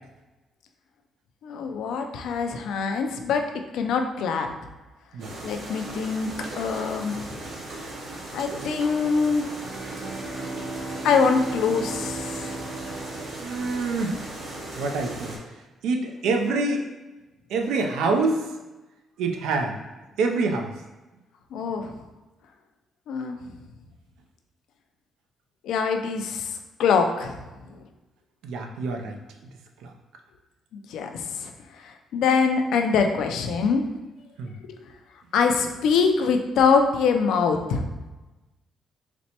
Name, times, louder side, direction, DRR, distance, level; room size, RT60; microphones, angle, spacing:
voice 1, 1.4-3.5 3.7-4.5 5.4-7.3 8.3-9.4 11.0-12.6 21.5-21.9 23.1-23.4 25.6-27.4 30.7-31.5 31.8-33.8 35.3-37.9, left 5 dB, 80° left, 5 dB, 0.4 m, -24 dB
sound 1, 5.2-15.4, right 2 dB, 65° right, 0.8 m, -37 dB
Bowed string instrument, 9.5-14.4, right 2 dB, 15° right, 0.3 m, -37 dB
voice 2, 13.4-14.1 14.8-15.3 15.8-16.9 17.5-18.4 19.2-19.8 20.2-20.7 28.4-29.2 29.8-29.9 34.4-34.5, right 3 dB, 85° right, 4 dB, 0.4 m, -25 dB
4.2 x 2.1 x 2.8 m, 1.1 s
cardioid pair, 90°, 0 cm